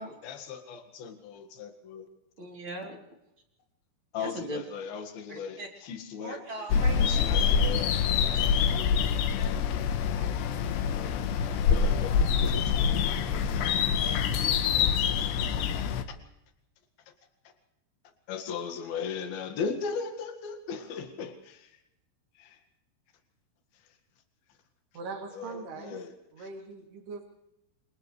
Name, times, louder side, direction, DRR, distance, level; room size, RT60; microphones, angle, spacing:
voice 1, 0.0-2.1 4.1-6.7 7.0-8.3 11.7-12.2 12.4-13.2 13.5-13.8 16.1-16.2 18.3-21.8 22.4-22.6 25.3-26.1 26.4-26.5, left 6 dB, 65° left, 5 dB, 3.6 m, -38 dB
voice 2, 2.4-3.0 4.2-4.6 5.3-5.7 6.2-9.0 10.1-10.3 13.2-13.4 14.0-14.9, right 1 dB, 30° right, 0 dB, 3.9 m, -41 dB
sound 1, 6.7-16.0, left 7 dB, 90° left, 3.4 m, -26 dB
voice 3, 24.9-26.0 26.3-27.3, right 4 dB, 70° right, 1 dB, 4.9 m, -41 dB
28.5 x 27.5 x 3.3 m, 0.86 s
omnidirectional pair, 4.8 m